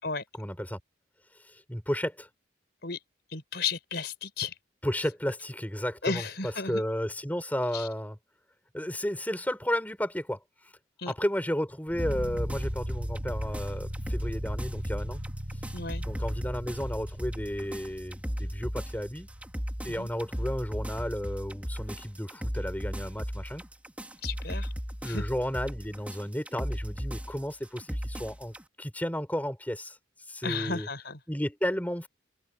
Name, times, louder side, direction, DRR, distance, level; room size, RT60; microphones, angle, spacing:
voice 1, 0.4-0.8 1.4-2.3 4.8-8.2 8.7-10.4 11.1-15.2 16.0-19.3 19.8-23.6 25.0-30.0 30.3-30.9 31.3-32.1, equal, 10° left, 5.3 m, -33 dB
voice 2, 3.3-4.5 6.0-6.8 7.7-7.9 11.0-11.1 15.7-16.0 20.0-20.1 24.2-24.7 25.1-25.3 30.4-31.2, left 4 dB, 55° left, 5.7 m, -34 dB
sound 1, 11.9-21.0, equal, 40° right, 4.9 m, -39 dB
sound 2, 12.0-28.6, equal, 5° right, 3.8 m, -36 dB
open air
head